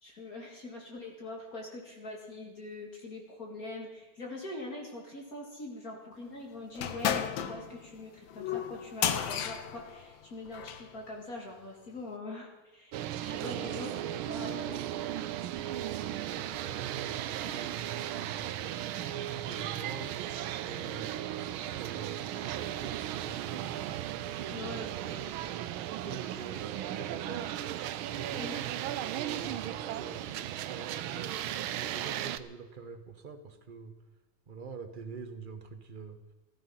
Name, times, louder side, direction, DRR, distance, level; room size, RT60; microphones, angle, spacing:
voice 1, 0.0-14.8 24.5-24.9 28.4-28.6, left 2 dB, 45° left, 0 dB, 2.5 m, -43 dB
sound 1, 6.8-10.9, left 8 dB, 70° left, 1.6 m, -33 dB
sound 2, 12.9-32.4, right 12 dB, 80° right, 1.4 m, -36 dB
voice 2, 15.8-18.9 19.2-20.2 20.6-23.7 24.3-25.4 25.9-27.5 28.0-28.6 29.0-31.4 31.8-33.9 34.5-36.2, right 5 dB, 30° right, 7 dB, 1.0 m, -46 dB
15.0 x 13.5 x 5.7 m, 1.2 s
omnidirectional pair, 2.3 m